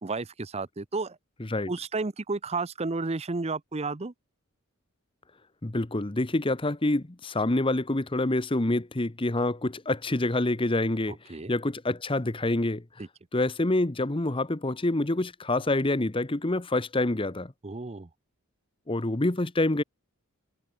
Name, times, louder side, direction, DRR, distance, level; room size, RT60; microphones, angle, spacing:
voice 1, 0.0-1.2 1.7-4.1 11.3-11.5 17.6-18.1, right 3 dB, 30° right, 0.7 m, -32 dB
voice 2, 1.4-1.7 5.6-11.2 11.5-12.8 13.3-17.5 18.9-19.8, left 2 dB, 25° left, 1.0 m, -27 dB
head